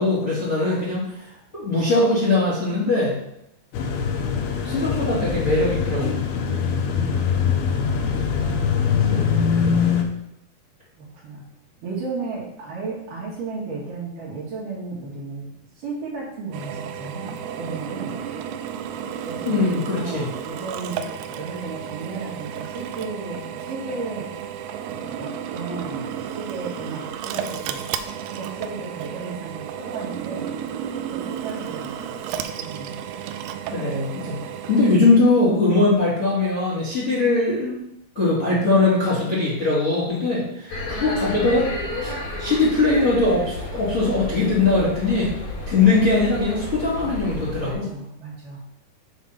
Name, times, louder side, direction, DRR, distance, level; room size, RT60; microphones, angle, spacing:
voice 1, 0.0-3.1 4.6-6.2 9.1-9.3 19.5-20.3 33.7-34.4 34.7-37.8 38.1-41.7 42.0-45.3 45.7-47.9, left 3 dB, 25° left, -8 dB, 1.9 m, -21 dB
sound 1, 3.7-10.0, left 6 dB, 75° left, 2.6 m, -22 dB
voice 2, 6.4-7.2 7.9-8.6 9.0-9.9 11.0-11.5 11.8-15.5 15.8-18.2 19.2-19.6 19.9-24.3 24.9-30.5 31.1-31.9 32.5-33.2 47.6-48.8, right 4 dB, 60° right, -5 dB, 3.0 m, -35 dB
Drill, 16.5-35.0, right 9 dB, 85° right, 2.5 m, -33 dB
sound 2, 40.7-47.7, left 2 dB, 50° left, 2.7 m, -32 dB
7.5 x 3.5 x 5.7 m, 0.81 s
omnidirectional pair, 4.6 m